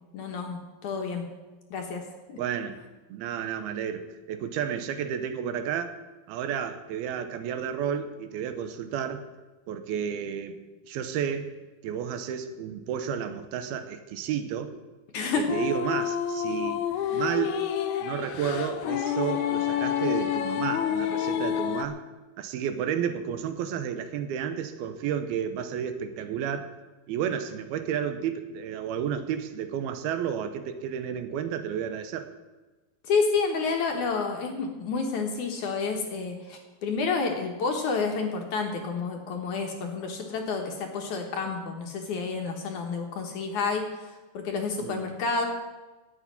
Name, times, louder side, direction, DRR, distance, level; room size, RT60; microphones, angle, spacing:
voice 1, 0.1-1.3 1.7-2.4 15.1-15.5 33.0-45.4, left 4 dB, 60° left, 3 dB, 2.4 m, -29 dB
voice 2, 2.4-2.8 3.1-6.0 6.3-9.2 9.7-10.6 10.9-11.5 11.8-14.7 15.3-17.6 18.0-22.0 22.4-26.7 27.1-32.3 44.8-45.1, right 8 dB, 80° right, 9 dB, 2.7 m, -31 dB
sound 1, 15.5-21.9, left 9 dB, 85° left, 1.7 m, -28 dB
11.5 x 8.3 x 9.7 m, 1.2 s
omnidirectional pair, 4.5 m